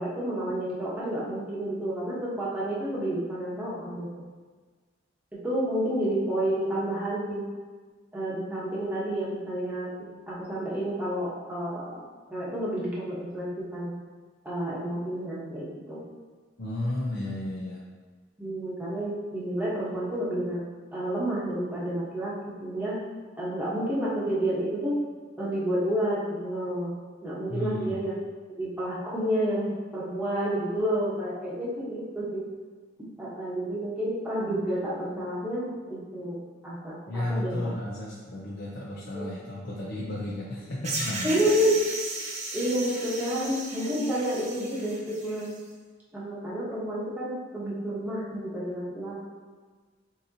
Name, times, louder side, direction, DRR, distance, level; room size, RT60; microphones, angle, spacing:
voice 1, 0.0-4.1 5.4-7.5 8.1-9.9 10.3-12.0 12.3-13.9 14.4-16.0 18.4-20.6 20.9-22.3 22.6-22.9 23.4-25.0 25.4-26.9 27.2-28.1 28.6-32.4 33.2-36.9 37.3-37.5 39.1-39.2 41.2-41.8 42.2-45.5 46.1-49.2, right 1 dB, 10° right, -8 dB, 1.2 m, -30 dB
voice 2, 16.6-17.8 27.5-28.0 37.1-41.4, left 1 dB, 55° left, -6 dB, 0.6 m, -33 dB
sound 1, 40.8-45.6, right 2 dB, 40° right, 0.8 m, -36 dB
6.3 x 2.8 x 2.8 m, 1.4 s
head